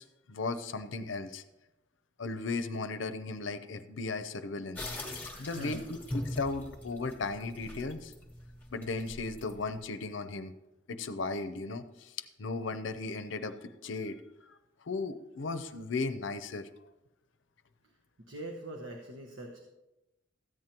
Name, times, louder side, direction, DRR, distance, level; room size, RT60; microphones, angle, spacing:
voice 1, 0.0-1.4 2.2-4.8 5.4-8.1 8.7-10.5 10.9-12.1 12.4-14.1 14.5-14.6 14.9-16.7, left 3 dB, 75° left, 11 dB, 0.6 m, -36 dB
sound 1, 4.8-9.8, left 1 dB, 10° left, 0.9 m, -42 dB
voice 2, 4.9-5.9 18.2-19.6, right 1 dB, 85° right, 1 dB, 1.0 m, -44 dB
14.0 x 9.0 x 2.9 m, 0.99 s
head